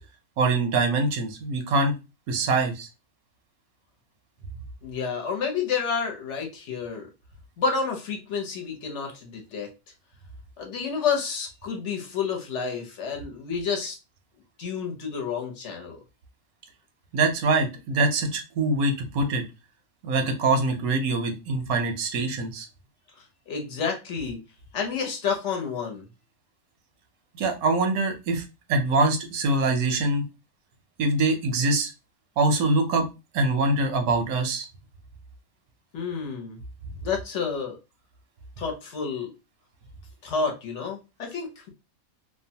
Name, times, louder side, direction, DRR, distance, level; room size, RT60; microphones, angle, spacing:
voice 1, 0.4-1.9 2.3-2.9 17.1-19.4 20.0-22.7 27.3-28.4 28.7-30.2 31.0-31.9 32.4-33.1 33.3-34.6, right 3 dB, 90° right, 5 dB, 1.1 m, -24 dB
voice 2, 4.8-7.1 7.6-9.7 10.6-14.0 14.6-16.0 23.5-24.4 24.7-26.1 35.9-36.6 37.0-37.8 38.6-39.3 40.2-41.7, left 5 dB, 60° left, 2 dB, 1.0 m, -29 dB
2.9 x 2.1 x 2.7 m, 0.27 s
omnidirectional pair, 1.5 m